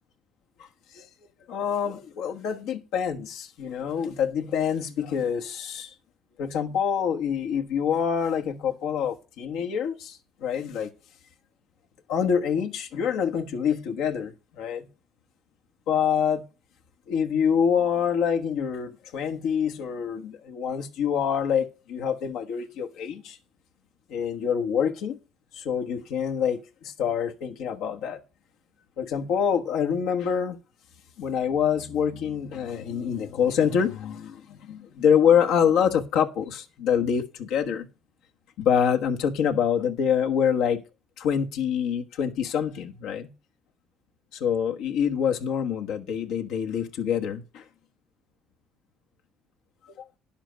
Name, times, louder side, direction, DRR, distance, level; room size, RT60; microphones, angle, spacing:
voice 1, 1.5-5.9 6.4-10.9 12.1-14.9 15.9-16.4 17.1-23.4 24.1-25.2 25.5-28.2 29.0-30.6 31.2-37.9 38.6-40.8 41.2-43.3 44.3-47.6 50.0-50.1, left 7 dB, 75° left, 1.2 m, -26 dB
10.0 x 7.3 x 5.0 m
supercardioid pair, 70°, 0 cm